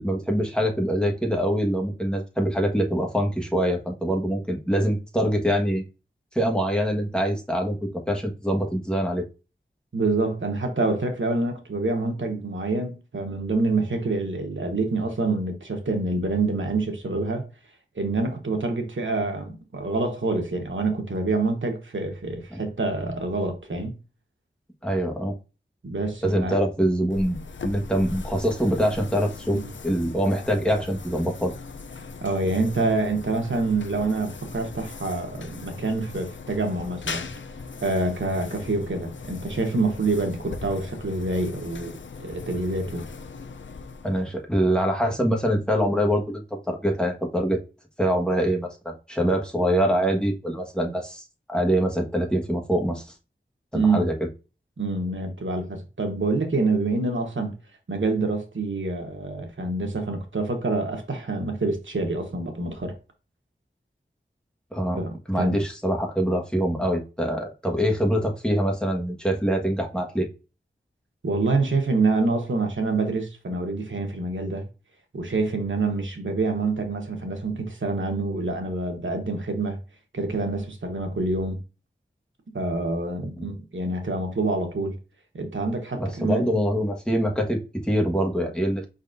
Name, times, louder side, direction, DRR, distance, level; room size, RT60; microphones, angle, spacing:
voice 1, 0.0-5.8 6.3-9.2 22.5-22.6 24.8-25.3 26.2-27.4 27.6-29.6 29.8-31.5 44.0-47.6 48.0-53.0 53.7-54.1 64.7-65.0 65.3-70.3 83.4-83.5 86.0-88.9, equal, 5° left, 1.4 m, -24 dB
voice 2, 9.9-17.5 17.9-24.0 25.8-26.6 29.5-29.7 32.2-37.3 37.8-41.9 42.2-43.0 53.7-54.1 54.8-57.5 57.9-62.9 65.0-65.6 71.2-74.6 75.1-79.8 80.1-81.6 82.5-84.9 85.3-86.6, right 3 dB, 80° right, 1.2 m, -26 dB
sound 1, 27.1-44.5, left 4 dB, 75° left, 0.5 m, -39 dB
5.0 x 4.1 x 2.6 m
wide cardioid pair, 40°, 20 cm